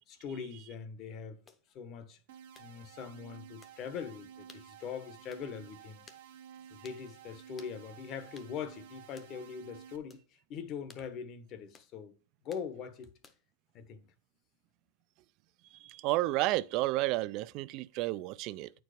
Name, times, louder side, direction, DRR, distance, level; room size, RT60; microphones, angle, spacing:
voice 1, 0.1-1.4 1.7-2.2 2.6-6.0 6.7-10.2 10.5-12.1 12.4-13.1 13.7-14.1, left 7 dB, 40° left, 1.1 m, -42 dB
sound 1, 1.5-1.6 2.5-2.7 3.6-3.8 4.5-4.7 5.3-5.5 6.1-6.3 6.8-7.0 7.6-7.8 8.4-8.5 9.2-9.3 10.1-10.3 10.9-11.1 11.7-11.9 12.5-12.7 13.2-13.5, left 5 dB, 20° left, 0.9 m, -57 dB
sound 2, 2.3-10.0, right 9 dB, 75° right, 1.0 m, -53 dB
voice 2, 15.8-18.7, right 18 dB, 50° right, 0.3 m, -31 dB
8.9 x 4.6 x 5.0 m
supercardioid pair, 140°, 0 cm